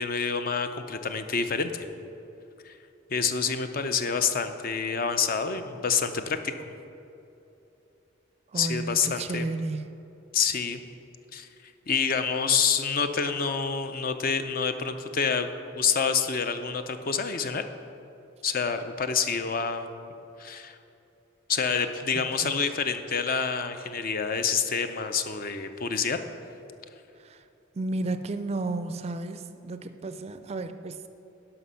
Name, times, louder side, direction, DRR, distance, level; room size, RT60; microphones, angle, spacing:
voice 1, 0.0-1.9 2.6-2.8 3.1-6.5 8.6-9.5 10.3-10.8 11.3-11.5 11.9-17.6 18.4-19.9 20.4-20.8 21.5-26.2, left 6 dB, 45° left, 8 dB, 0.5 m, -27 dB
voice 2, 8.5-9.8 22.4-22.5 27.2-27.5 27.7-31.1, right 2 dB, 35° right, 10 dB, 0.4 m, -33 dB
11.5 x 5.8 x 5.6 m, 2.8 s
head